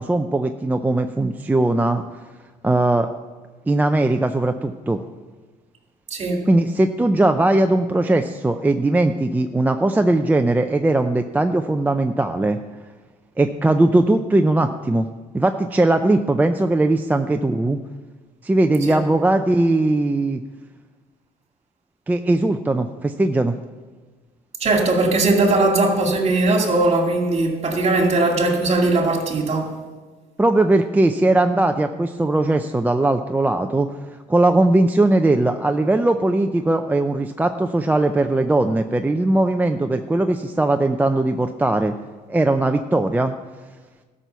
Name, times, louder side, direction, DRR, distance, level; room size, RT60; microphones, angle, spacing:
voice 1, 0.0-2.0 2.6-3.1 3.7-5.0 6.5-12.6 13.4-15.1 15.3-17.8 18.4-20.4 22.1-23.5 30.4-33.9 34.3-41.9 42.3-43.3, right 2 dB, 10° right, 0.5 m, -19 dB
voice 2, 6.1-6.4 18.9-19.0 24.6-29.8, right 2 dB, 40° right, 2.2 m, -19 dB
12.5 x 6.2 x 6.8 m
cardioid pair, 110°, 17 cm